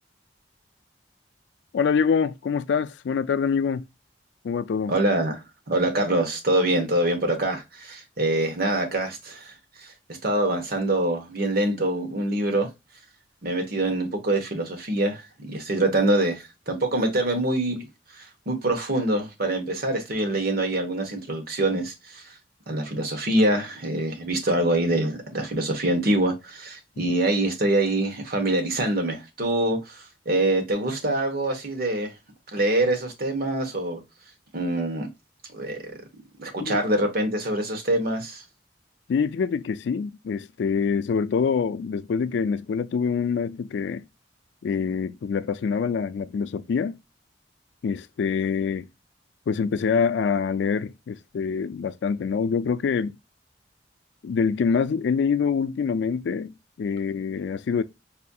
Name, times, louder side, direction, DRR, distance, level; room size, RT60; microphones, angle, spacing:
voice 1, 1.7-3.8 4.4-4.9 27.0-27.1 36.6-36.8 39.1-44.1 44.6-47.0 47.8-48.9 49.5-53.1 54.2-57.8, left 6 dB, 70° left, 0.3 m, -25 dB
voice 2, 4.9-9.9 10.2-12.7 13.4-17.9 18.1-22.3 22.7-32.1 32.5-34.0 34.5-35.1 35.5-35.9 36.4-38.4, right 1 dB, 55° right, 1.1 m, -25 dB
4.2 x 2.7 x 2.2 m
head